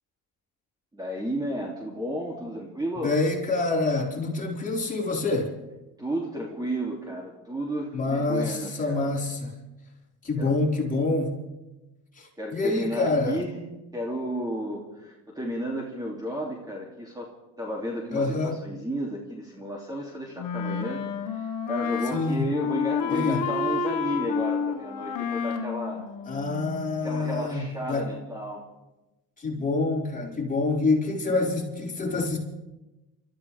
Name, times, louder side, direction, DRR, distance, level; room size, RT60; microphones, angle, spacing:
voice 1, 0.9-3.1 6.0-9.2 10.4-10.5 12.4-13.5 13.9-17.3 17.6-26.1 27.0-28.6, equal, 10° right, -2 dB, 2.9 m, -33 dB
voice 2, 3.0-5.5 7.9-9.5 10.2-11.4 12.2-13.4 18.1-18.6 22.1-22.5 23.1-23.4 26.3-28.1 29.4-32.4, left 3 dB, 20° left, -4 dB, 5.3 m, -26 dB
Wind instrument woodwind instrument, 20.4-27.0, left 5 dB, 60° left, 1.6 m, -30 dB
28.5 x 14.0 x 3.5 m, 1.0 s
cardioid pair, 100°, 37 cm